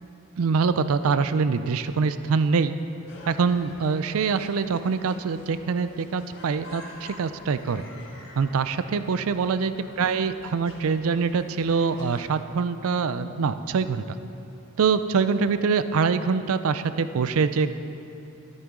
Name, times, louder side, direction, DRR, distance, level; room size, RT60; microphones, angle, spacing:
voice 1, 0.4-2.7 3.3-7.8 8.4-14.2 14.8-17.7, right 5 dB, 65° right, 12 dB, 0.4 m, -24 dB
sound 1, 3.1-12.3, left 1 dB, 55° left, 1.5 m, -47 dB
12.5 x 10.5 x 3.7 m, 2.8 s
head